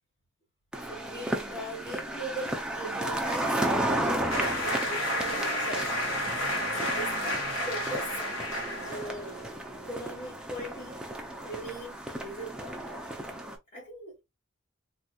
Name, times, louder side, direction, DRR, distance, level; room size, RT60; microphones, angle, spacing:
sound 1, 0.7-13.6, right 1 dB, 5° right, 0.7 m, -34 dB
voice 1, 0.8-3.6 4.0-5.9 6.3-8.3 8.6-9.4 9.7-11.0 11.4-13.0 13.7-14.1, right 1 dB, 35° left, 1.6 m, -40 dB
sound 2, 4.3-9.3, left 1 dB, 80° left, 1.6 m, -31 dB
3.5 x 3.0 x 2.4 m
head